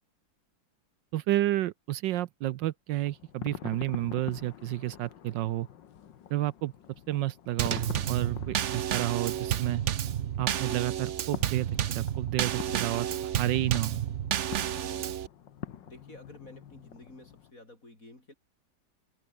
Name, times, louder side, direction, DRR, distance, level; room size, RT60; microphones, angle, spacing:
voice 1, 1.1-5.7 6.3-6.7 7.1-9.8 10.4-13.1 13.4-14.1, right 14 dB, 75° right, 1.3 m, -31 dB
sound 1, 2.9-17.5, left 9 dB, 70° left, 1.9 m, -46 dB
Drum kit / Snare drum / Bass drum, 7.6-15.3, right 10 dB, 60° right, 0.8 m, -31 dB
voice 2, 15.8-18.3, left 2 dB, 40° left, 6.3 m, -51 dB
omnidirectional pair, 2.1 m